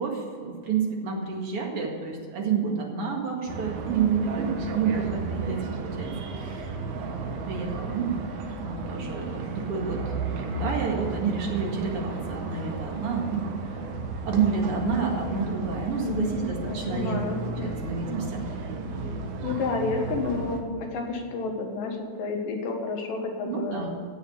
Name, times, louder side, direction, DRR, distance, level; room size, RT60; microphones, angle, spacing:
voice 1, 0.0-8.1 8.6-13.8 14.2-17.2 17.4-18.5 23.4-24.0, right 6 dB, 45° right, 0 dB, 2.4 m, -29 dB
sound 1, 3.5-20.6, right 4 dB, 90° right, 3.1 m, -34 dB
voice 2, 16.0-16.4 16.7-17.8 19.4-23.8, left 3 dB, 70° left, 2 dB, 3.2 m, -30 dB
15.5 x 6.4 x 8.2 m, 2.1 s
omnidirectional pair, 4.2 m